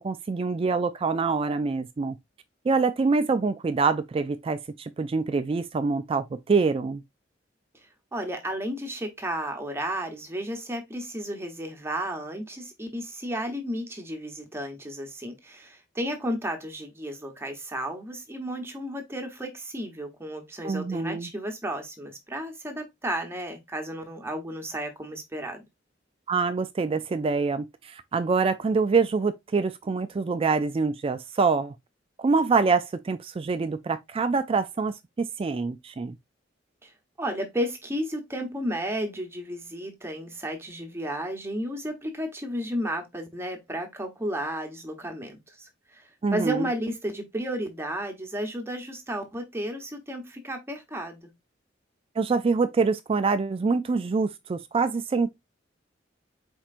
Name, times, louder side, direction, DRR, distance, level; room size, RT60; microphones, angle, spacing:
voice 1, 0.0-2.2 2.6-7.0 20.6-21.3 26.3-31.7 32.2-36.2 46.2-46.7 52.2-55.3, right 4 dB, 30° right, 0.3 m, -25 dB
voice 2, 8.1-25.6 36.8-36.9 37.2-51.3, equal, 15° right, 1.0 m, -33 dB
4.4 x 4.3 x 2.5 m
head